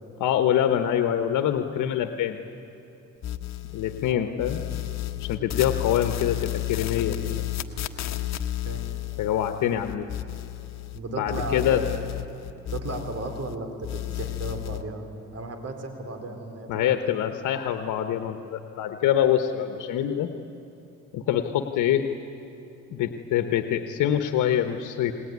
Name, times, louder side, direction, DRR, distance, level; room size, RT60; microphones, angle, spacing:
voice 1, 0.2-2.4 3.7-4.6 5.2-7.4 9.2-10.0 11.1-11.8 16.7-20.3 21.1-22.1 22.9-25.1, left 10 dB, 85° left, 7 dB, 1.2 m, -25 dB
sound 1, 3.2-4.1 4.4-11.0 11.3-13.6 13.8-14.8, left 14 dB, 60° left, 1.4 m, -32 dB
voice 2, 10.9-11.9 12.7-15.1 15.3-17.0, right 2 dB, 55° right, 6 dB, 4.2 m, -35 dB
29.0 x 20.5 x 9.6 m, 2.9 s
cardioid pair, 90°, 30 cm